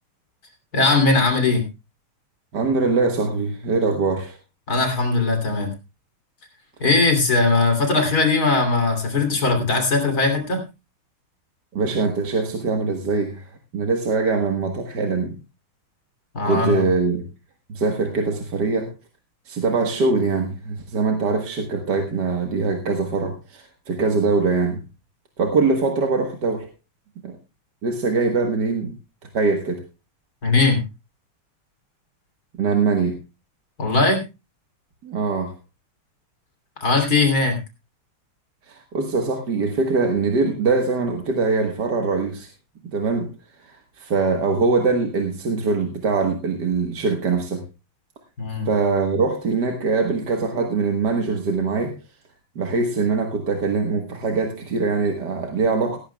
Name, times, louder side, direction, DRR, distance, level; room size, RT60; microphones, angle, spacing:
voice 1, 0.7-1.6 4.7-5.7 6.8-10.6 16.3-16.8 30.4-30.8 33.8-34.2 36.8-37.6 48.4-48.7, left 3 dB, 45° left, 5 dB, 3.6 m, -19 dB
voice 2, 2.5-4.4 11.7-15.4 16.4-17.3 17.7-18.9 19.5-24.8 25.4-26.7 27.2-27.4 27.8-28.9 29.3-29.8 32.5-33.2 35.0-35.5 38.7-42.5 42.9-43.3 43.6-47.6 48.7-52.0 52.6-56.0, right 4 dB, 55° right, 3 dB, 1.9 m, -22 dB
17.5 x 14.5 x 2.3 m, 0.27 s
omnidirectional pair, 2.4 m